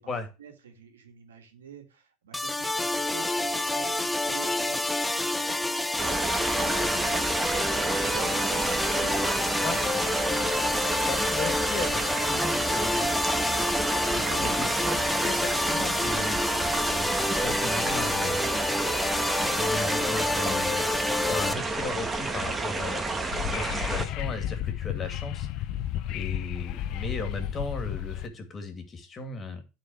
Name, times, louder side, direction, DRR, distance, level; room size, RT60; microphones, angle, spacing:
voice 1, 0.0-5.9 6.2-10.1, right 7 dB, 90° right, 5 dB, 1.9 m, -47 dB
sound 1, 2.3-21.5, left 2 dB, 5° left, 0.7 m, -28 dB
sound 2, 6.0-24.1, right 3 dB, 20° right, 1.4 m, -30 dB
voice 2, 11.0-13.1 13.9-18.9 19.2-20.9 21.2-25.6 26.1-29.6, left 3 dB, 30° left, 6 dB, 2.4 m, -36 dB
Wind / Subway metro underground, 23.2-28.3, left 11 dB, 60° left, 0.7 m, -32 dB
9.8 x 4.3 x 6.2 m, 0.30 s
hypercardioid pair, 90°, 0 cm